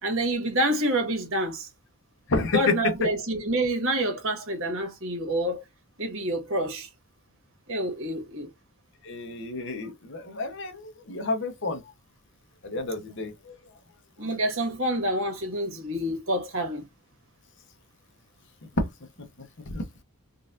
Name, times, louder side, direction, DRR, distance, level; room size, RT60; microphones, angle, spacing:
voice 1, 0.0-1.7 2.5-5.6 6.0-6.9 7.7-8.5 14.2-16.8, right 1 dB, 60° right, 1.4 m, -27 dB
voice 2, 2.3-2.8 9.0-11.8 12.6-13.6 18.8-18.9 19.7-19.8, left 2 dB, 55° left, 1.0 m, -29 dB
3.9 x 2.5 x 2.5 m
head